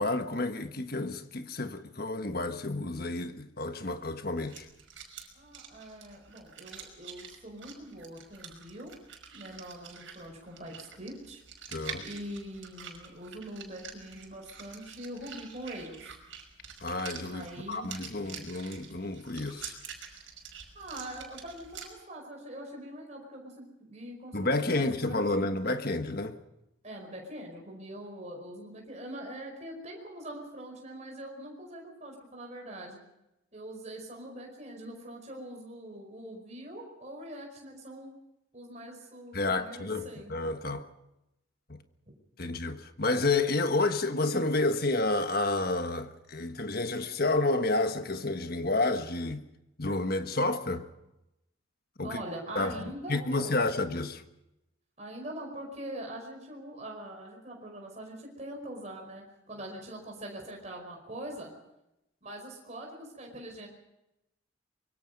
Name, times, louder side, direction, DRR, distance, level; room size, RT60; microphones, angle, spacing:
voice 1, 0.0-4.6 11.7-12.0 16.8-19.7 24.3-26.4 39.3-40.9 41.7-41.8 42.4-49.4 49.8-50.9 52.0-52.2 52.5-52.7 53.1-54.2, left 2 dB, 50° left, 1.5 m, -30 dB
sound 1, 4.4-21.9, right 7 dB, 70° right, 5.5 m, -47 dB
voice 2, 5.3-8.9 9.3-11.4 12.0-16.1 17.3-17.9 18.2-18.5 20.7-25.5 26.8-33.0 33.5-38.1 38.5-40.3 52.0-53.7 55.0-61.5 62.2-63.7, right 1 dB, 35° right, 5.0 m, -43 dB
25.0 x 23.0 x 5.4 m
head